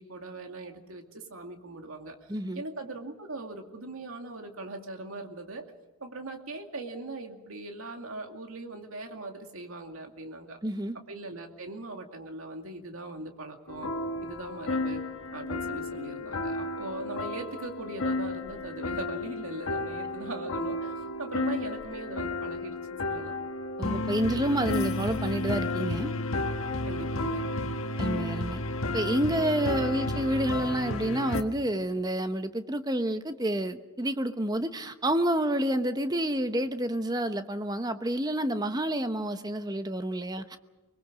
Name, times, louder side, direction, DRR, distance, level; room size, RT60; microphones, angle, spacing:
voice 1, 0.0-5.6 6.0-10.6 11.1-13.9 14.2-15.0 15.3-23.4 26.9-27.5, right 2 dB, 75° right, 4 dB, 2.4 m, -40 dB
voice 2, 2.3-2.6 10.6-11.0 23.8-26.1 28.0-28.6 28.9-40.6, right 1 dB, 20° right, 9 dB, 0.9 m, -29 dB
sound 1, 13.7-31.4, left 2 dB, 70° left, 1.6 m, -32 dB
25.0 x 21.0 x 6.2 m, 1.2 s
head